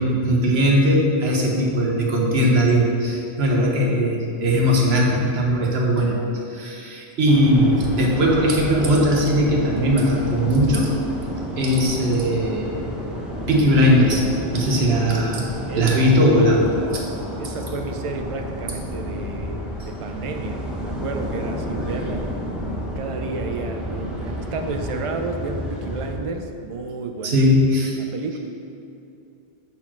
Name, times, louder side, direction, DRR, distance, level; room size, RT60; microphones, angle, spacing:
voice 1, 0.0-6.1 6.5-11.0 11.6-12.8 13.5-14.2 14.5-16.6 16.9-17.0 27.2-28.0, equal, 75° right, -1 dB, 1.3 m, -19 dB
sound 1, 7.3-26.1, equal, ahead, 0.9 m, -31 dB
voice 2, 15.7-16.4 16.8-22.3 23.0-27.4 28.0-28.4, right 3 dB, 45° right, 5 dB, 0.4 m, -32 dB
5.4 x 4.5 x 6.0 m, 2.8 s
omnidirectional pair, 1.1 m